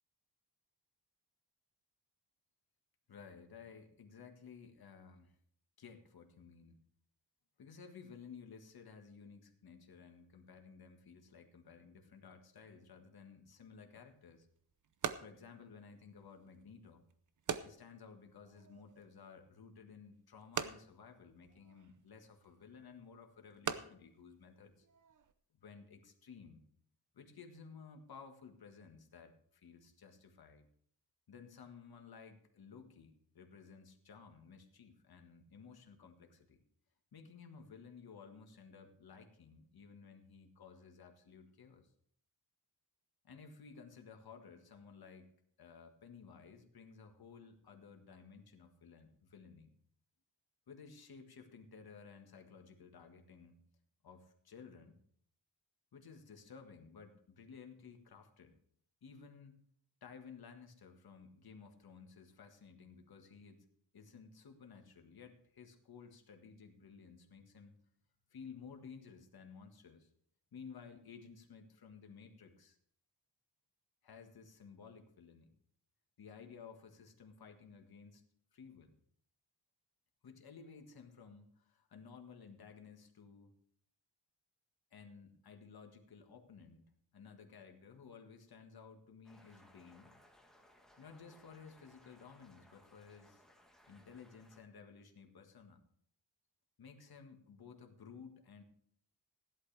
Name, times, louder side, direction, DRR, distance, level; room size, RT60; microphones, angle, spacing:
voice 1, 3.1-5.3 5.8-6.8 7.6-14.5 15.2-17.0 17.6-24.9 25.5-26.6 27.1-30.7 31.3-36.6 37.1-41.9 43.2-45.3 45.6-49.7 50.7-53.6 54.0-55.0 55.9-58.6 59.0-59.6 60.0-63.7 63.9-67.7 68.3-70.1 70.5-72.8 74.0-75.5 76.2-78.2 78.5-79.0 80.2-83.5 84.9-86.8 87.1-90.1 91.0-93.4 93.9-95.8 96.8-98.6, left 5 dB, 60° left, 5 dB, 1.7 m, -55 dB
sound 1, 14.0-25.3, right 7 dB, 50° right, 0.7 m, -46 dB
sound 2, 89.2-94.6, left 1 dB, ahead, 1.3 m, -65 dB
16.5 x 11.0 x 3.4 m, 0.63 s
wide cardioid pair, 170°, 41 cm